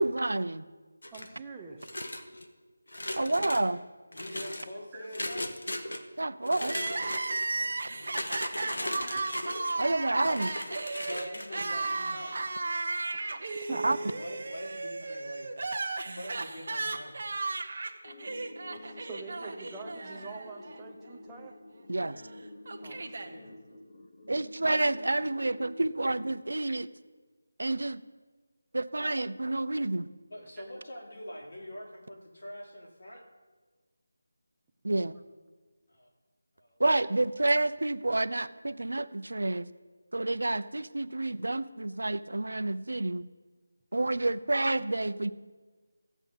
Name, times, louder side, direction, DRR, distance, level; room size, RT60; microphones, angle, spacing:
voice 1, 0.0-0.6 3.2-3.8 6.2-6.8 9.8-10.5 13.7-14.0 21.9-22.2 24.3-26.9 27.6-28.0 28.7-30.1 34.8-35.1 36.8-39.7 40.1-43.3 43.9-45.3, right 2 dB, 85° right, 12 dB, 0.7 m, -29 dB
sound 1, 1.0-1.4 1.8-2.5 2.9-3.6 4.1-4.7 5.1-6.0 6.4-7.5 8.0-9.7 10.2-11.7, left 1 dB, 80° left, 1.5 m, -37 dB
voice 2, 1.1-1.8 4.3-4.4 4.9-5.1 6.7-6.8 9.1-9.2 13.1-14.0 18.8-21.6 22.8-23.5 44.2-44.3, right 4 dB, 5° right, -2 dB, 0.8 m, -46 dB
voice 3, 4.1-5.6 7.4-8.1 8.4-9.1 10.2-10.4 11.0-12.4 14.0-15.5 16.1-17.2 23.2-23.5 30.3-33.2 35.9-36.1 36.6-36.8, left 1 dB, 60° left, -1 dB, 3.4 m, -45 dB
Crying sobbing, 6.6-20.8 21.1-21.2 22.2-23.3, right 3 dB, 45° right, 1.1 m, -35 dB
sound 2, 18.1-27.1, left 1 dB, 30° left, 1.1 m, -49 dB
14.5 x 8.4 x 5.4 m, 1.4 s
figure-of-eight pair, 175°, 0 cm